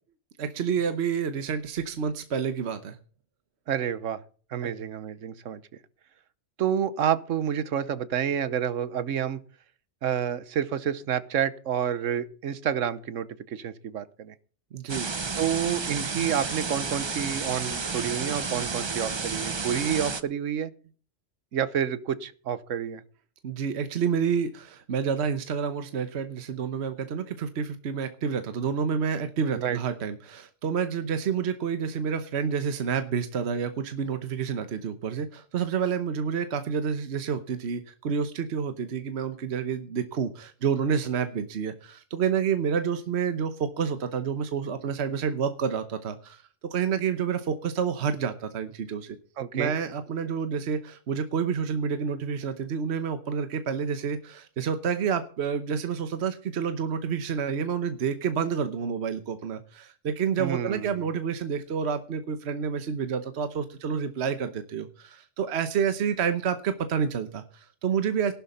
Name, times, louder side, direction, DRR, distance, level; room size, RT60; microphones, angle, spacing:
voice 1, 0.4-3.0 4.6-4.7 14.7-15.1 23.4-46.4 46.7-49.2 49.5-68.3, right 6 dB, 60° right, 9 dB, 1.2 m, -29 dB
voice 2, 3.7-4.2 4.5-5.6 6.6-9.4 10.0-14.3 15.4-20.7 21.5-23.0 29.6-29.8 49.4-49.7 60.4-61.0, right 8 dB, 85° right, 15 dB, 1.3 m, -29 dB
sound 1, 14.9-20.2, right 4 dB, 30° right, 0.5 m, -31 dB
15.0 x 11.5 x 4.2 m, 0.41 s
omnidirectional pair, 1.3 m